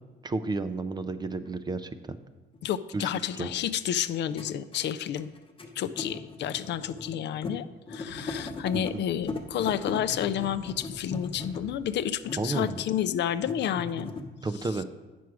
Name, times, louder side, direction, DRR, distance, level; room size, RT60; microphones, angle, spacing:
voice 1, 0.2-2.2 2.9-3.1 3.3-3.5 8.5-9.0 12.4-12.8 14.4-14.8, right 3 dB, 20° right, 11 dB, 0.4 m, -32 dB
sound 1, 1.5-1.6 2.5-2.6 4.0-4.1 4.3-7.1 7.4-7.6 7.9-8.9 9.3-11.7 12.2-13.0 13.3-14.2, left 3 dB, 25° left, 0.9 m, -38 dB
voice 2, 2.6-5.3 5.8-14.1, left 10 dB, 60° left, 12 dB, 0.4 m, -30 dB
sound 2, 8.1-12.5, right 1 dB, 80° right, 1.9 m, -52 dB
9.3 x 6.1 x 4.7 m, 1.2 s
cardioid pair, 125°, 20 cm